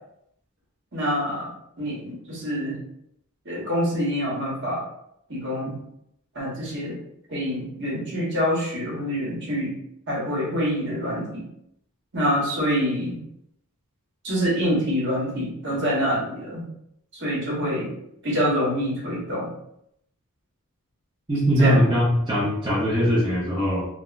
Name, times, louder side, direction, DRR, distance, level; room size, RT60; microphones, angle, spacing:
voice 1, 0.9-1.5 1.8-2.8 3.4-4.8 5.3-5.8 6.3-7.0 7.3-9.8 10.1-11.5 12.1-13.2 14.2-16.6 17.1-17.9 18.2-19.5 21.4-22.0, equal, 55° right, -4 dB, 1.1 m, -26 dB
voice 2, 21.3-23.9, equal, 20° right, -8 dB, 0.6 m, -21 dB
3.4 x 2.0 x 2.4 m, 0.75 s
head